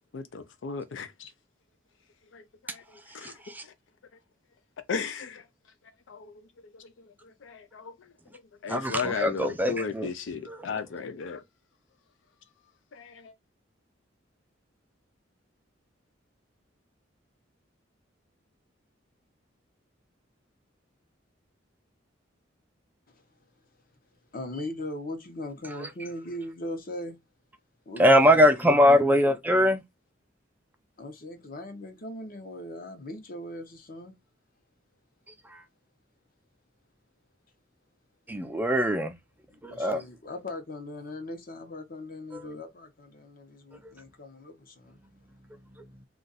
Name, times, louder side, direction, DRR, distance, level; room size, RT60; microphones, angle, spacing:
voice 1, 0.1-1.3 2.3-3.7 4.9-5.5 6.1-6.4 6.7-11.4 12.9-13.3, left 5 dB, 75° left, 0.4 m, -36 dB
voice 2, 3.1-3.6 8.7-10.1 10.5-10.6 25.8-25.9 28.0-29.8 35.4-35.6 38.3-39.2 39.6-40.0 42.3-42.4 43.8-43.9 45.8-45.9, equal, 10° right, 0.3 m, -22 dB
voice 3, 24.3-27.2 27.9-29.2 31.0-34.1 39.6-45.0, left 1 dB, 50° left, 0.9 m, -39 dB
2.5 x 2.4 x 3.9 m
head